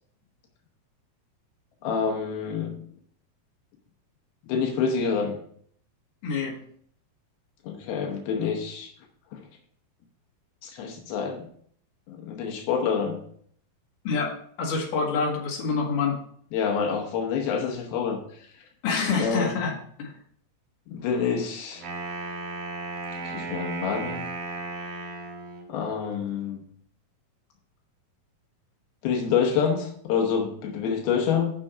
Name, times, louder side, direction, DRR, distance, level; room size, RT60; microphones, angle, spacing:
voice 1, 1.8-2.7 4.5-5.3 7.6-8.9 9.3-9.4 10.6-11.5 12.1-13.2 16.5-18.2 19.2-19.5 20.9-21.9 23.2-24.3 25.7-26.6 29.0-31.5, left 6 dB, 85° left, 2 dB, 2.9 m, -27 dB
voice 2, 6.2-6.6 14.0-14.3 14.6-16.2 18.8-19.7 20.0-20.1, left 5 dB, 60° left, -1 dB, 3.2 m, -26 dB
Wind instrument woodwind instrument, 21.7-25.7, right 3 dB, 70° right, 4.0 m, -35 dB
7.7 x 6.1 x 5.5 m, 0.63 s
omnidirectional pair, 4.3 m